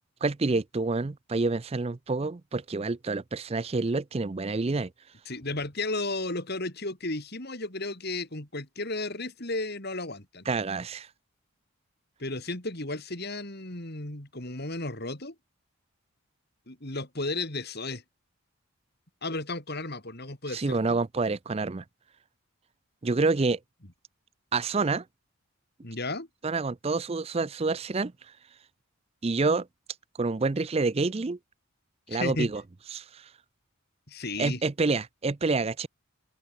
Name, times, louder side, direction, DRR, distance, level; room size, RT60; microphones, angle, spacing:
voice 1, 0.2-4.9 10.5-11.1 20.5-21.8 23.0-23.6 24.5-25.0 26.4-28.1 29.2-29.7 30.2-31.4 32.1-32.6 32.9-33.3 34.4-35.9, right 3 dB, 25° right, 0.4 m, -28 dB
voice 2, 5.3-10.4 12.2-15.4 16.7-18.0 19.2-21.0 25.8-26.3 32.1-32.5 34.1-34.6, left 2 dB, 45° left, 3.6 m, -34 dB
open air
head